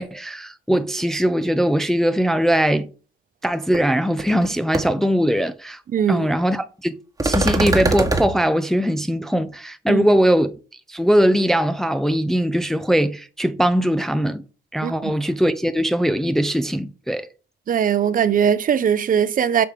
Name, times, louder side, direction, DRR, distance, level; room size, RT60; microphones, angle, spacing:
voice 1, 0.0-2.9 3.4-5.8 6.1-6.9 7.2-10.6 10.9-14.4 14.7-17.3, equal, ahead, 0.5 m, -20 dB
Hits on the table, 3.7-3.8 4.2-4.5 4.7-4.8 7.2-8.3, right 2 dB, 20° right, 1.1 m, -21 dB
voice 2, 5.9-6.3 9.9-10.0 14.8-15.1 17.7-19.6, right 8 dB, 45° right, 0.6 m, -20 dB
7.1 x 3.4 x 4.9 m
cardioid pair, 90°, 20 cm